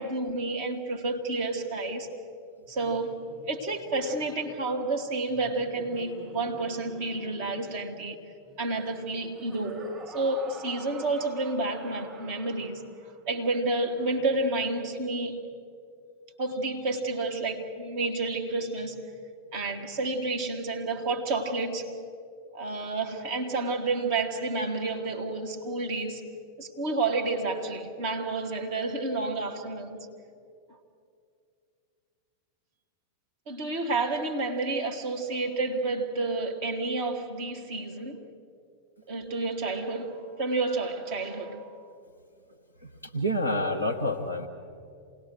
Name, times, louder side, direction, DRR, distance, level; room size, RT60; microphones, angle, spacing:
voice 1, 0.0-2.1 2.7-8.2 8.6-12.9 13.3-15.5 16.4-19.0 19.5-22.0 22.5-26.3 26.6-30.0 33.5-38.2 39.1-41.8, right 2 dB, 50° right, 2.1 m, -30 dB
Laughter, 2.7-13.2, right 3 dB, 30° right, 5.1 m, -48 dB
voice 2, 42.8-44.5, equal, 90° right, 1.4 m, -28 dB
27.5 x 19.0 x 6.4 m
figure-of-eight pair, 90°, 0 cm